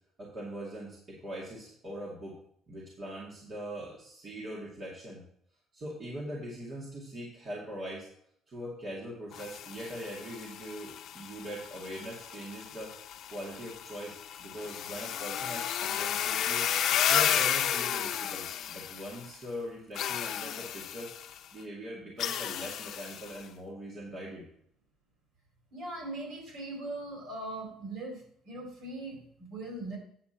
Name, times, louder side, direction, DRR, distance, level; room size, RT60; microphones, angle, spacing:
voice 1, 0.2-2.4 2.7-5.2 5.7-8.1 8.5-12.9 13.3-21.1 21.5-24.4, equal, 35° right, -5 dB, 2.3 m, -41 dB
sound 1, 9.3-19.3 20.0-21.4 22.2-23.4, left 10 dB, 60° left, 0.6 m, -33 dB
voice 2, 25.7-30.0, right 2 dB, 60° right, 1 dB, 4.4 m, -40 dB
8.7 x 7.1 x 4.3 m, 0.67 s
cardioid pair, 140°, 0 cm